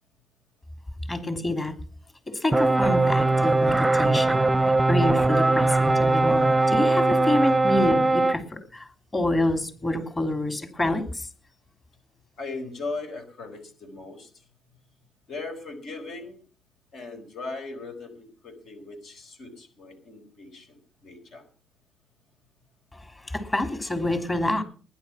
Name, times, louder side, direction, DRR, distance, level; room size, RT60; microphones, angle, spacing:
voice 1, 1.1-1.8 2.3-4.4 4.9-11.3 22.9-24.6, left 1 dB, 25° left, 8 dB, 3.4 m, -27 dB
sound 1, 2.5-8.4, right 2 dB, 10° right, 0.7 m, -21 dB
voice 2, 12.4-14.3 15.3-16.4 16.9-21.4, left 3 dB, 70° left, 6 dB, 4.6 m, -38 dB
20.0 x 10.5 x 5.8 m, 0.41 s
cardioid pair, 90°, 0 cm